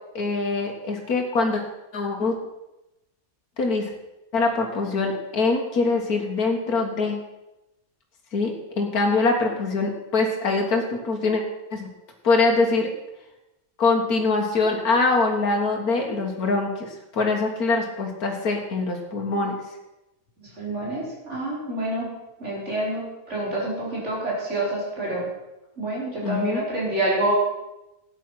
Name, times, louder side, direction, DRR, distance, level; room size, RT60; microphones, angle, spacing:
voice 1, 0.2-1.6 1.9-2.4 3.6-3.9 4.3-7.2 8.3-11.4 11.7-11.9 12.2-12.9 13.8-19.6 26.2-26.7, left 3 dB, 85° left, 1 dB, 2.0 m, -23 dB
voice 2, 20.4-22.1 22.4-25.3 25.8-27.3, right 1 dB, 50° right, -4 dB, 5.0 m, -27 dB
13.5 x 9.2 x 5.8 m, 0.95 s
omnidirectional pair, 1.5 m